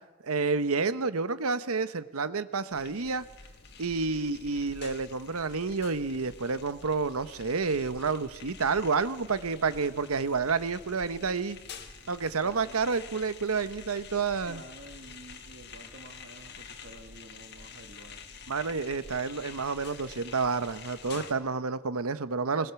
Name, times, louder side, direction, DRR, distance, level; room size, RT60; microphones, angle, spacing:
voice 1, 0.2-3.2 3.8-11.6 12.1-14.6 18.5-22.7, right 4 dB, 85° right, 13 dB, 0.9 m, -29 dB
sound 1, 2.7-21.3, left 5 dB, 50° left, 1.7 m, -48 dB
voice 2, 12.4-12.8 14.4-18.3 22.6-22.7, right 1 dB, 55° right, 6 dB, 2.3 m, -50 dB
20.5 x 20.0 x 7.0 m, 1.2 s
head